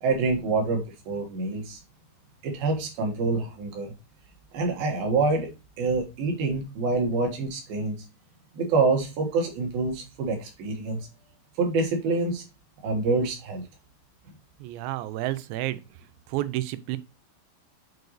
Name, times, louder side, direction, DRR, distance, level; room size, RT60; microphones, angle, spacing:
voice 1, 0.0-1.8 2.4-3.9 4.5-5.5 5.8-8.0 8.5-11.0 11.6-12.4 12.8-13.6, right 3 dB, 65° right, 3.3 m, -26 dB
voice 2, 14.6-15.8 16.3-17.0, right 15 dB, 90° right, 2.9 m, -30 dB
7.7 x 4.7 x 3.1 m
omnidirectional pair, 5.1 m